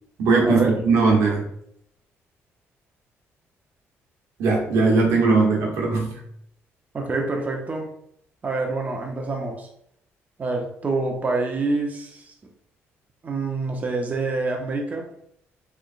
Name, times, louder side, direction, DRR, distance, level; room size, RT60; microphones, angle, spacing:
voice 1, 0.2-1.4 4.4-6.2, right 4 dB, 85° right, -1 dB, 0.9 m, -19 dB
voice 2, 6.9-7.9 8.4-9.7 10.4-12.3 13.2-15.1, right 3 dB, 30° right, 1 dB, 0.7 m, -26 dB
3.3 x 3.1 x 2.5 m, 0.71 s
cardioid pair, 100°, 5 cm